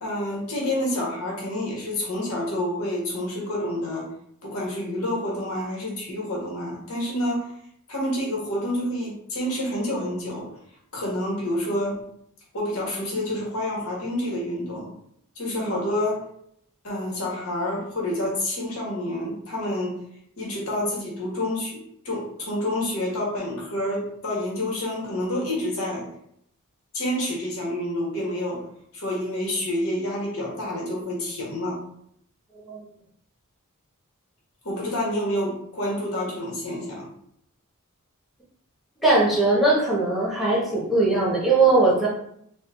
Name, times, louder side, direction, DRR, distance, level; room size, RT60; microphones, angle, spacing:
voice 1, 0.0-4.1 4.4-7.5 7.9-10.5 10.9-12.1 12.5-14.9 15.3-16.2 16.8-20.0 20.4-26.1 26.9-28.7 28.9-31.8 34.6-37.1, left 1 dB, 70° left, -4 dB, 1.6 m, -28 dB
voice 2, 39.0-42.1, right 2 dB, ahead, -6 dB, 1.1 m, -20 dB
4.2 x 2.4 x 3.7 m, 0.71 s
head